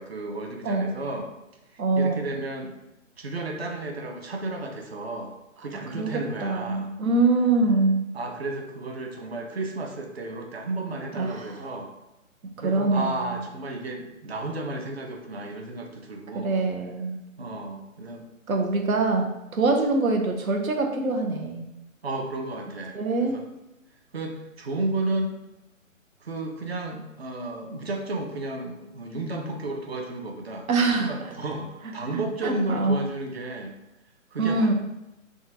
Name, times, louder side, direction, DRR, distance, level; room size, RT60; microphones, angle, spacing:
voice 1, 0.0-1.3 2.0-2.8 3.2-6.9 8.1-11.9 12.6-16.5 17.4-18.3 22.0-23.4 24.1-25.3 26.2-33.8 34.3-34.7, right 2 dB, 50° right, 2 dB, 0.5 m, -33 dB
voice 2, 1.8-2.2 5.9-8.1 11.2-11.5 12.6-13.4 16.4-17.2 18.5-21.7 22.9-23.4 30.7-31.1 32.1-32.9 34.4-34.7, right 3 dB, 85° right, 3 dB, 0.8 m, -24 dB
3.6 x 2.3 x 2.8 m, 0.93 s
hypercardioid pair, 175°, 41 cm